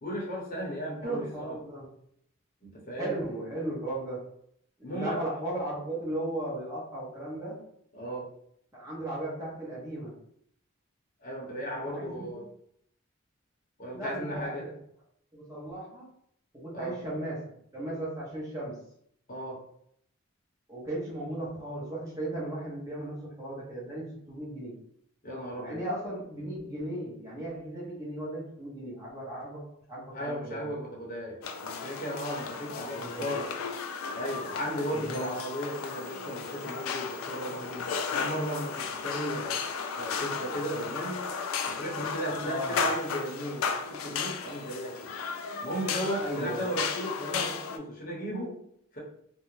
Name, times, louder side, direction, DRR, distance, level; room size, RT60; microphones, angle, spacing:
voice 1, 0.0-1.6 2.6-3.2 4.8-5.2 7.9-8.3 11.2-12.4 13.8-14.6 16.7-17.0 19.3-19.6 25.2-25.8 30.1-33.5 34.1-39.6 39.9-41.2 41.6-45.1 45.6-48.6 48.9-49.0, equal, 45° left, -3 dB, 0.8 m, -35 dB
voice 2, 1.0-1.9 3.0-4.3 4.8-7.6 8.7-10.2 11.9-12.4 13.9-14.7 15.3-16.1 16.5-18.8 20.7-24.8 25.6-29.6 29.9-30.6 32.8-33.3 34.9-35.3 42.3-42.8 46.2-46.7, right 1 dB, 15° right, -7 dB, 0.8 m, -36 dB
sound 1, 31.4-47.8, left 5 dB, 90° left, 0.3 m, -35 dB
2.4 x 2.0 x 3.0 m, 0.71 s
head